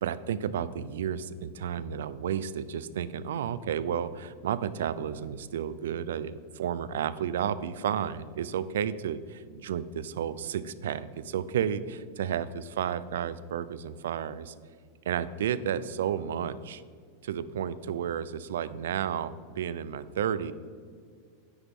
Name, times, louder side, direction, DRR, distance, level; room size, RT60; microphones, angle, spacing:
voice 1, 0.0-14.5 15.1-16.8 17.2-20.5, right 8 dB, 85° right, 16 dB, 0.5 m, -32 dB
11.0 x 10.0 x 3.7 m, 2.1 s
supercardioid pair, 135°, 0 cm